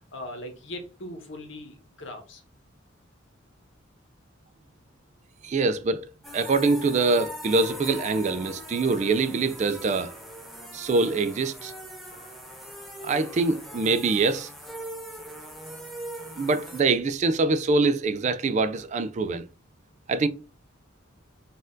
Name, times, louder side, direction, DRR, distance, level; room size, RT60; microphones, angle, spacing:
voice 1, 0.1-2.4, left 1 dB, 65° left, 1.0 m, -39 dB
voice 2, 5.4-10.1 10.7-11.7 13.0-14.5 16.4-19.4 20.1-20.3, right 3 dB, 35° right, 0.3 m, -24 dB
sound 1, 6.2-16.8, equal, ahead, 0.7 m, -41 dB
4.1 x 2.5 x 3.7 m
head